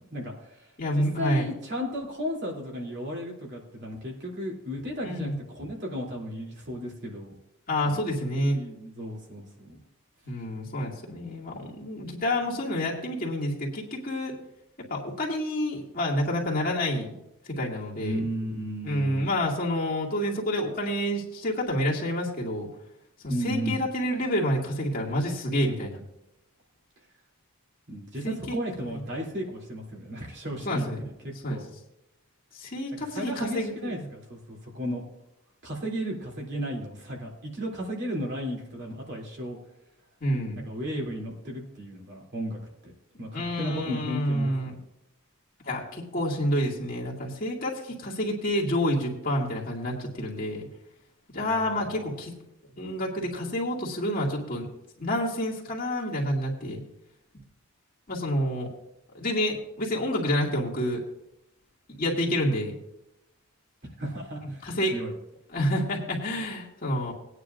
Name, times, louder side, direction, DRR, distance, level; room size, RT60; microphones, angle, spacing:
voice 1, 0.1-0.6 0.9-7.3 7.8-8.1 8.5-9.8 18.0-19.3 23.3-23.8 27.9-30.9 31.2-31.7 33.1-35.1 35.6-39.6 40.5-42.9 43.2-44.7 51.4-52.0 64.0-65.1, equal, 50° right, -2 dB, 3.1 m, -34 dB
voice 2, 0.8-1.5 5.0-5.4 7.7-8.6 10.2-14.4 14.9-17.1 17.5-18.2 18.8-22.7 23.2-26.0 28.2-28.5 30.6-31.0 31.4-31.6 32.5-33.9 40.2-40.6 43.3-44.7 45.7-50.7 51.3-52.3 52.8-54.7 55.0-56.8 58.1-58.7 59.1-61.0 62.0-62.7 64.6-64.9 65.5-67.1, equal, 40° left, -4 dB, 2.3 m, -28 dB
19.5 x 9.6 x 2.6 m, 0.86 s
head